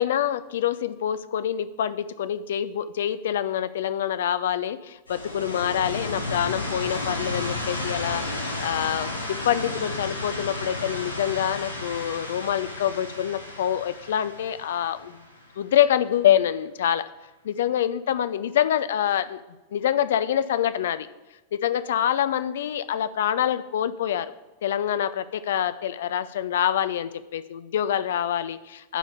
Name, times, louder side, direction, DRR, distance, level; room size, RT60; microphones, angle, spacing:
voice 1, 0.0-15.2 15.6-17.1 17.4-19.4 19.7-21.1 21.5-24.3 24.6-29.0, left 10 dB, 60° left, 15 dB, 0.4 m, -26 dB
sound 1, 5.1-15.8, left 2 dB, 80° left, 1.0 m, -33 dB
9.8 x 3.4 x 6.9 m, 1.1 s
figure-of-eight pair, 90°, 0 cm